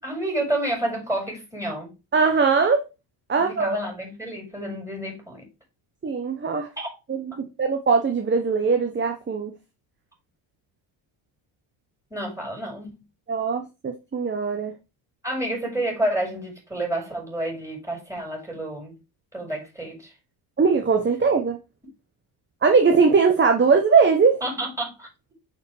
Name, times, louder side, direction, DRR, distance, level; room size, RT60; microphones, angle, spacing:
voice 1, 0.0-1.9 3.4-5.5 6.8-6.9 7.3-7.4 12.1-13.0 15.2-18.9 19.3-20.1 24.4-25.1, right 1 dB, 5° right, 5.1 m, -29 dB
voice 2, 2.1-2.8 3.3-3.8 6.0-6.7 7.1-9.5 13.3-14.7 20.6-21.6 22.6-24.4, right 5 dB, 20° right, 1.0 m, -20 dB
6.1 x 5.0 x 4.8 m
supercardioid pair, 85°, 50 cm